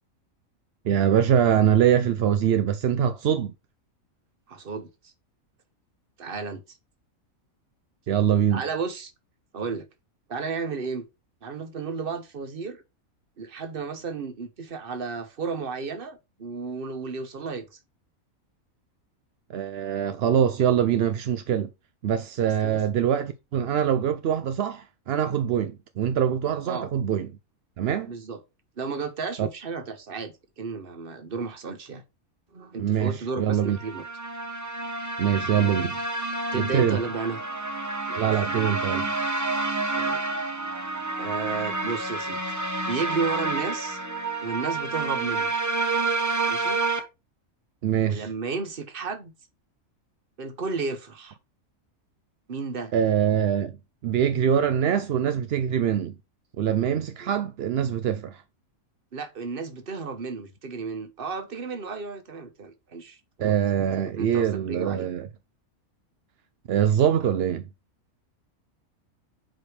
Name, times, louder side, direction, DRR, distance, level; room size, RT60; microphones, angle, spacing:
voice 1, 0.8-3.5 8.1-8.6 19.5-21.7 22.0-27.3 27.8-28.1 29.4-29.5 32.8-33.8 35.2-36.0 36.5-37.0 38.2-39.1 47.8-48.3 52.9-53.8 54.0-56.1 56.6-58.4 63.4-65.3 66.7-67.7, right 9 dB, 60° right, 0.7 m, -23 dB
voice 2, 4.5-5.1 6.2-6.8 8.5-9.1 9.5-9.9 10.3-11.0 11.4-12.8 13.4-17.8 22.4-22.8 26.7-26.9 28.1-28.4 28.8-32.0 32.5-34.0 36.5-37.4 38.1-38.4 40.0-40.2 41.2-42.4 42.8-44.0 44.4-45.5 46.5-46.8 48.0-49.3 50.4-51.4 52.5-52.9 57.2-57.3 59.1-63.6 64.2-65.1, right 4 dB, 45° right, 1.1 m, -33 dB
sound 1, 33.6-47.0, right 3 dB, 15° right, 0.8 m, -29 dB
7.7 x 5.0 x 3.2 m
omnidirectional pair, 1.5 m